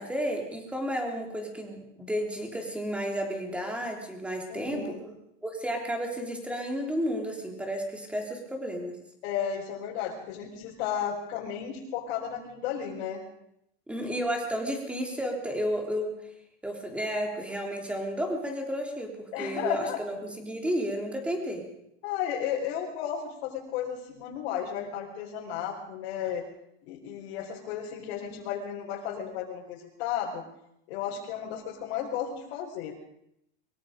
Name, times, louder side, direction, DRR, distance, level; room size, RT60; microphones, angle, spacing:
voice 1, 0.0-5.0 5.4-8.9 13.9-16.1 16.6-21.7, equal, 5° right, 2 dB, 3.4 m, -32 dB
voice 2, 4.5-5.0 9.2-13.2 19.3-20.0 22.0-26.4 26.9-30.4 30.9-32.9, left 9 dB, 75° left, -4 dB, 4.6 m, -33 dB
23.5 x 22.5 x 5.2 m, 0.78 s
cardioid pair, 170°, 32 cm